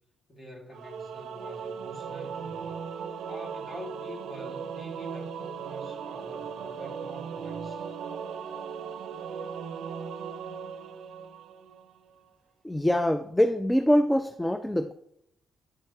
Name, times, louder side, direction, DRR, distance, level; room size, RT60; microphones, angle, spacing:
voice 1, 0.3-2.7 3.3-7.8 9.3-9.5, equal, 30° left, -2 dB, 2.3 m, -45 dB
Singing / Musical instrument, 0.7-12.0, right 6 dB, 70° right, 0.5 m, -38 dB
voice 2, 12.6-14.9, equal, 5° left, 10 dB, 0.3 m, -24 dB
9.9 x 4.4 x 2.9 m, 0.74 s
cardioid pair, 90°, 0 cm